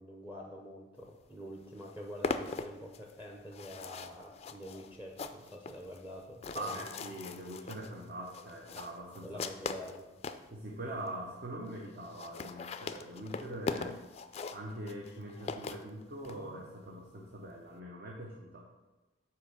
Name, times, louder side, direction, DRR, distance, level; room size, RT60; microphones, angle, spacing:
voice 1, 0.0-6.9 9.2-10.1, equal, 10° right, 0 dB, 0.6 m, -46 dB
sound 1, 1.3-1.4 1.6-10.5 11.1-11.2 11.4-11.5 11.7-11.8 12.0-16.4, left 4 dB, 35° left, 0.3 m, -41 dB
voice 2, 6.5-9.4 10.5-14.0 14.5-18.6, right 1 dB, 55° right, -1 dB, 0.9 m, -43 dB
5.8 x 4.6 x 6.5 m, 1.2 s
head